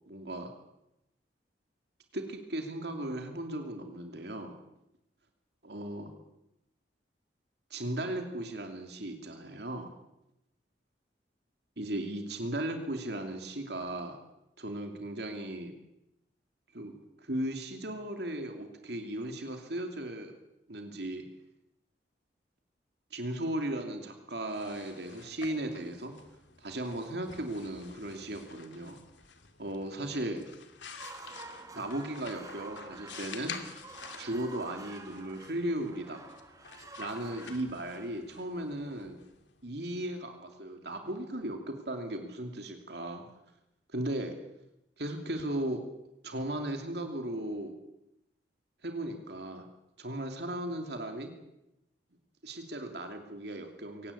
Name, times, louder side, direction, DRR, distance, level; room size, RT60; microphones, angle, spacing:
voice 1, 0.1-0.5 2.1-4.5 5.6-6.1 7.7-9.9 11.8-14.2 14.6-15.7 16.7-16.9 17.2-20.3 20.7-21.3 23.1-26.1 26.6-29.0 29.6-30.4 31.7-33.6 34.2-36.2 37.0-39.2 39.6-43.3 43.9-44.3 45.0-45.8 46.2-47.7 48.8-49.7 50.0-51.3 52.4-54.1, right 1 dB, 60° right, 5 dB, 2.7 m, -36 dB
sound 1, 24.3-40.0, left 6 dB, 80° left, 2.5 m, -50 dB
sound 2, 30.8-38.9, right 3 dB, 20° right, 1.7 m, -49 dB
23.5 x 18.0 x 8.5 m, 0.87 s
head